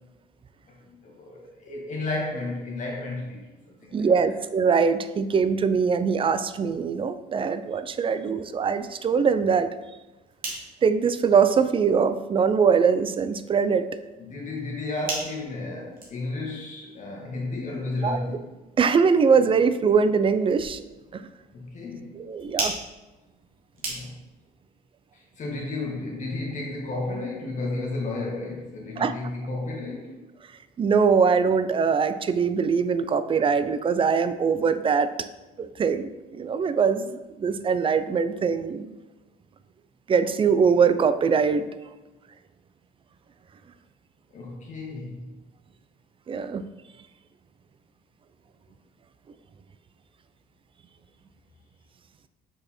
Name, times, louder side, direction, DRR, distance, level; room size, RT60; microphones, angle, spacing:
voice 1, 0.9-4.3 14.2-18.5 21.5-22.2 23.8-24.1 25.1-30.1 44.3-45.2, left 2 dB, 45° left, -2 dB, 1.6 m, -33 dB
voice 2, 3.9-9.7 10.8-13.9 18.0-18.2 18.8-20.8 21.1-21.3 22.2-22.7 29.0-29.1 30.8-35.1 35.6-38.9 40.1-41.7 46.3-46.6, right 6 dB, 30° right, 12 dB, 0.4 m, -22 dB
sound 1, 10.0-24.4, right 2 dB, 60° right, 2.1 m, -40 dB
6.2 x 5.3 x 4.3 m, 1.1 s
cardioid pair, 110°, 17 cm